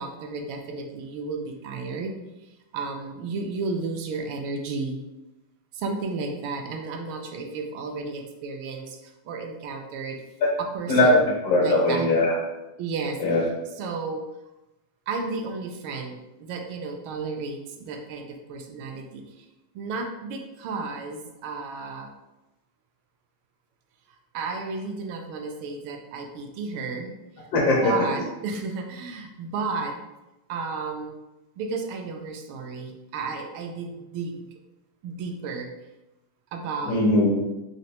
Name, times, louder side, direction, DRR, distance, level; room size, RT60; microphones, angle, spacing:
voice 1, 0.0-5.0 5.7-10.2 10.6-11.2 11.6-12.1 12.8-13.2 13.8-14.3 15.1-19.5 19.7-22.1 24.1-30.0 30.5-31.2 31.6-34.5 35.0-35.7 36.5-37.0, right 4 dB, 75° right, 4 dB, 1.3 m, -33 dB
voice 2, 10.9-12.4 13.2-13.5 27.5-28.1 36.8-37.4, left 1 dB, 70° left, -2 dB, 0.9 m, -20 dB
4.2 x 3.3 x 2.8 m, 0.99 s
omnidirectional pair, 2.4 m